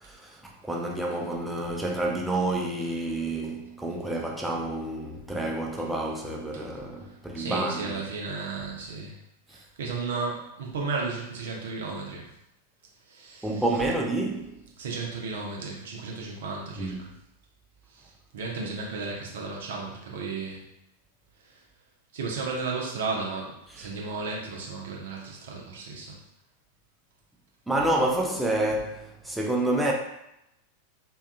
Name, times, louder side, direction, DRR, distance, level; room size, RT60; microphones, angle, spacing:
voice 1, 0.0-8.0 13.4-14.6 16.8-17.1 23.8-23.9 27.7-29.9, right 1 dB, 5° right, 0.4 m, -29 dB
voice 2, 7.3-9.2 9.5-12.3 13.1-13.6 14.8-17.1 17.9-18.0 18.3-20.7 22.1-26.2, right 4 dB, 60° right, 0.6 m, -34 dB
2.6 x 2.3 x 2.4 m
figure-of-eight pair, 90°, 0 cm